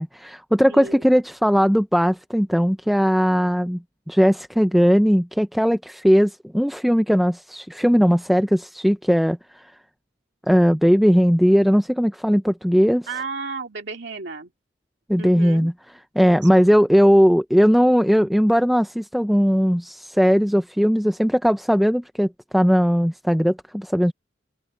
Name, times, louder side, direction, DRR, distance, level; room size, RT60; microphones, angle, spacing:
voice 1, 0.0-3.8 4.1-9.6 10.5-13.1 15.1-15.7 16.2-24.1, equal, ahead, 0.4 m, -18 dB
voice 2, 0.7-1.1 13.1-14.5 15.2-15.7 16.2-16.6, right 4 dB, 65° right, 2.3 m, -33 dB
head